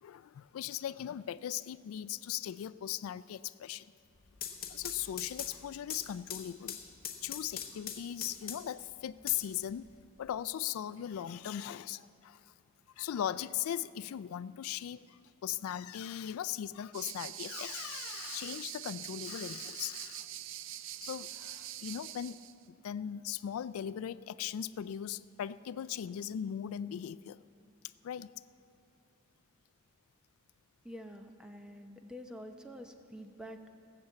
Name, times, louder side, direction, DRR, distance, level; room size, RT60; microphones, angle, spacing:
voice 1, 0.0-3.9 4.7-6.8 7.2-9.9 10.2-12.5 13.0-20.3 21.0-22.4 22.7-27.4 28.0-28.3, left 10 dB, 90° left, 16 dB, 0.3 m, -39 dB
sound 1, 4.2-8.8 9.3-10.2, left 9 dB, 45° left, 1.0 m, -42 dB
sound 2, 16.9-22.5, right 12 dB, 65° right, 0.4 m, -44 dB
voice 2, 30.8-33.7, equal, 5° right, 4 dB, 0.8 m, -47 dB
17.0 x 6.9 x 8.0 m, 2.5 s
head